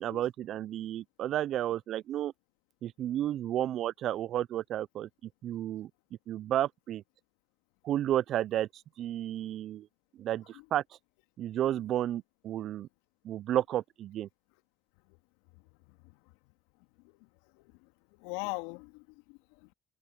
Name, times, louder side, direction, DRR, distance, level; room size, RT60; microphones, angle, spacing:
voice 1, 0.0-2.3 2.8-5.1 5.4-5.9 6.3-7.0 7.8-9.9 10.2-10.8 11.4-12.9 13.2-14.3, right 12 dB, 55° right, 0.9 m, -32 dB
voice 2, 15.9-16.2 17.0-17.3 17.5-17.9 18.2-19.7, left 28 dB, 75° left, 2.4 m, -42 dB
hypercardioid pair, 60°, 0 cm